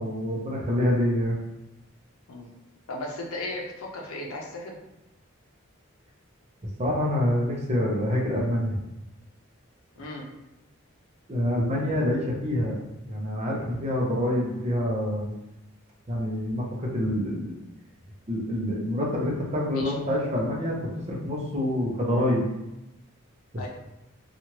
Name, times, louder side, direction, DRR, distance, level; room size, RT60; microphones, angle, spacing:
voice 1, 0.0-1.4 6.8-8.8 11.3-12.8 13.1-15.2 16.1-17.5 18.3-20.8 21.1-22.4, left 1 dB, 30° right, -2 dB, 0.6 m, -26 dB
voice 2, 2.9-4.8 10.0-10.2 19.7-19.9 23.6-23.7, left 2 dB, 85° left, 0 dB, 0.6 m, -35 dB
3.0 x 2.4 x 2.9 m, 0.93 s
head